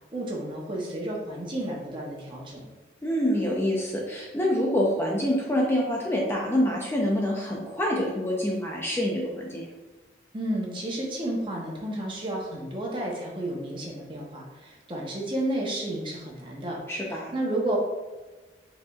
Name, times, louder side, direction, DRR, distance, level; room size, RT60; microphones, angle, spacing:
voice 1, 0.1-2.7 10.3-16.8 17.3-17.8, right 1 dB, 25° right, -3 dB, 0.9 m, -31 dB
voice 2, 3.0-9.7 16.9-17.3, left 1 dB, 15° left, -2 dB, 0.5 m, -26 dB
4.8 x 4.1 x 2.4 m, 1.2 s
head